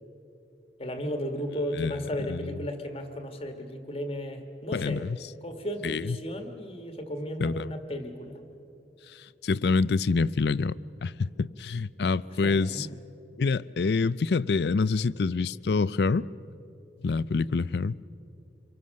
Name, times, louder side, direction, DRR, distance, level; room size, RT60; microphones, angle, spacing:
voice 1, 0.8-5.1 5.4-8.4 12.3-12.9, equal, 30° left, 1.5 m, -35 dB
voice 2, 4.7-5.2 5.8-6.2 7.4-7.7 9.4-10.8 11.0-12.9 13.4-16.3 17.0-18.0, left 4 dB, 70° left, 0.4 m, -26 dB
27.5 x 23.5 x 6.4 m
head